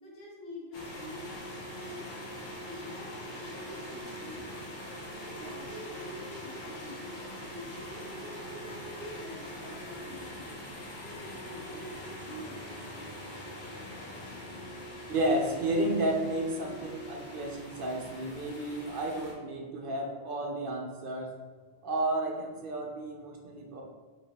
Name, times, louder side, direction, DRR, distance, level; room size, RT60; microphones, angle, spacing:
voice 1, 0.0-1.2 1.8-2.2 2.7-4.6 5.2-7.1 7.5-10.5 11.0-12.9, left 1 dB, 70° left, -4 dB, 1.3 m, -46 dB
sound 1, 0.7-19.3, equal, 50° left, 0.8 m, -43 dB
voice 2, 15.1-21.4 21.8-23.8, right 1 dB, 60° right, 0 dB, 0.8 m, -32 dB
4.8 x 3.0 x 2.8 m, 1.4 s
omnidirectional pair, 1.1 m